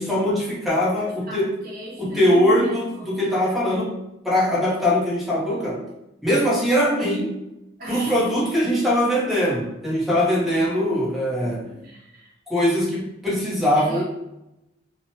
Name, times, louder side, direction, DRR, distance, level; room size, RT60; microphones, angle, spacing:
voice 1, 0.0-1.5 2.0-3.9 4.2-5.8 6.2-7.4 7.9-11.8 12.5-14.0, equal, ahead, -6 dB, 0.6 m, -21 dB
voice 2, 1.3-3.6 7.8-8.3 11.8-12.3 13.7-14.0, right 1 dB, 50° right, -6 dB, 1.0 m, -37 dB
2.9 x 2.0 x 2.7 m, 0.90 s
head